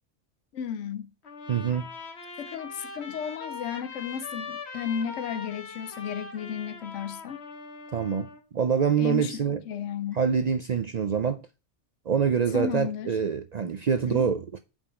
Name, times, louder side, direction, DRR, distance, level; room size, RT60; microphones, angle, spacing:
voice 1, 0.5-1.1 2.4-7.4 9.0-10.2 12.5-13.1 13.9-14.3, left 7 dB, 90° left, 1.0 m, -34 dB
Trumpet, 1.2-8.4, left 4 dB, 65° left, 1.5 m, -41 dB
voice 2, 1.5-1.9 7.9-9.6 10.1-11.4 12.1-14.6, right 7 dB, 60° right, 0.4 m, -25 dB
5.3 x 5.0 x 6.4 m
omnidirectional pair, 1.2 m